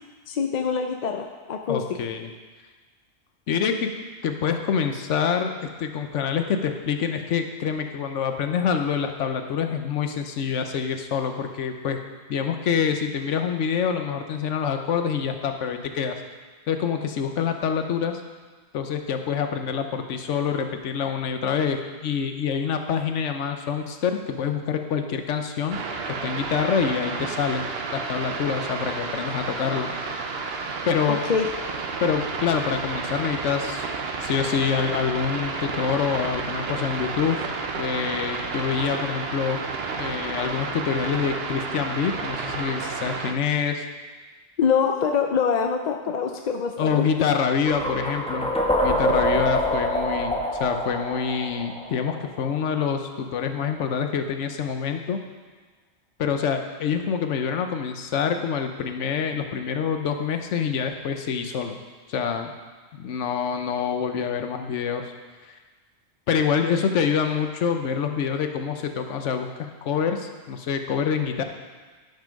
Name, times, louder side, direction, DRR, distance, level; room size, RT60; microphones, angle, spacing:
voice 1, 0.3-1.8 31.0-31.5 44.6-47.1, left 6 dB, 55° left, 4 dB, 0.5 m, -24 dB
voice 2, 1.7-2.3 3.5-3.9 4.2-12.0 12.3-16.2 16.7-18.2 18.7-25.8 26.1-27.7 27.9-29.9 30.9-31.2 32.0-33.9 34.2-37.4 37.8-39.6 39.9-43.8 46.8-48.5 48.8-55.2 56.2-61.8 62.1-62.5 62.9-65.1 66.3-71.4, left 7 dB, 90° left, 6 dB, 1.1 m, -26 dB
sound 1, 25.7-43.3, right 4 dB, 60° right, 0.9 m, -31 dB
sound 2, 47.6-52.6, equal, 5° left, 1.0 m, -25 dB
10.5 x 5.7 x 5.2 m, 1.4 s
omnidirectional pair, 1.2 m